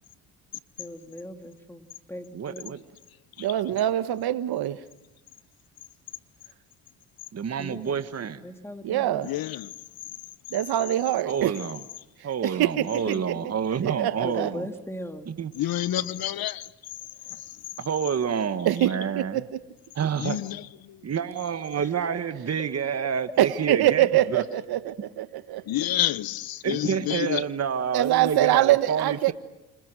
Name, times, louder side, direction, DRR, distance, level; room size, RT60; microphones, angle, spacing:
voice 1, 0.8-2.7 7.6-8.0 8.4-9.3 12.4-12.7 13.1-13.8 14.2-15.4 21.8-21.9, left 1 dB, 5° left, 3.2 m, -39 dB
voice 2, 2.3-2.8 7.3-8.4 11.2-11.8 12.2-14.7 15.3-15.5 17.8-19.4 19.9-20.4 21.0-24.4 26.6-29.3, right 7 dB, 40° right, 1.7 m, -28 dB
voice 3, 3.4-4.8 8.8-9.3 10.5-11.5 12.4-12.9 13.8-14.5 18.6-19.6 23.4-25.7 27.9-29.3, right 13 dB, 65° right, 1.5 m, -24 dB
voice 4, 9.2-9.7 15.5-16.7 17.3-17.6 20.2-21.0 25.7-27.4, left 13 dB, 60° left, 1.0 m, -29 dB
30.0 x 27.0 x 6.3 m
supercardioid pair, 85°, 40 cm